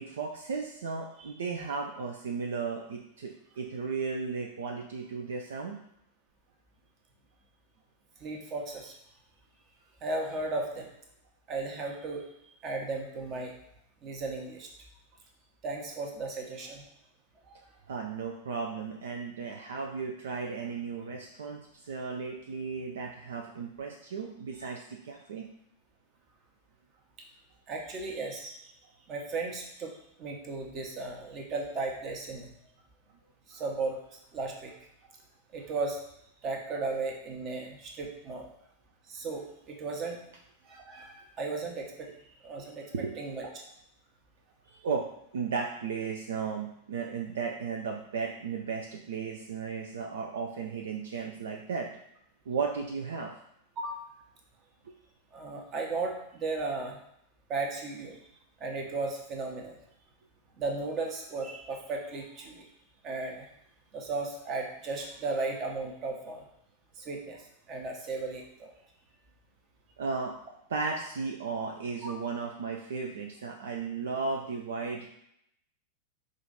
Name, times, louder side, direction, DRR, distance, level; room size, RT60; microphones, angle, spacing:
voice 1, 0.0-5.8 17.9-25.5 42.9-43.2 44.7-45.1 45.3-51.9 52.5-53.3 54.8-54.9 70.0-70.3 70.7-75.1, right 5 dB, 65° right, 2 dB, 0.4 m, -35 dB
voice 2, 8.2-9.0 10.0-10.9 11.5-12.3 12.6-13.5 14.0-14.7 15.6-16.8 17.4-17.6 27.7-28.7 29.1-32.5 33.5-34.7 35.5-36.0 36.4-38.5 39.1-40.2 40.6-42.1 42.4-43.6 53.8-54.0 55.3-57.0 57.5-58.2 58.6-59.8 60.6-62.7 63.0-63.5 63.9-66.4 67.0-68.7 72.0-72.1, right 3 dB, 35° right, 1 dB, 0.9 m, -35 dB
5.0 x 2.5 x 4.0 m, 0.74 s
figure-of-eight pair, 90°, 0 cm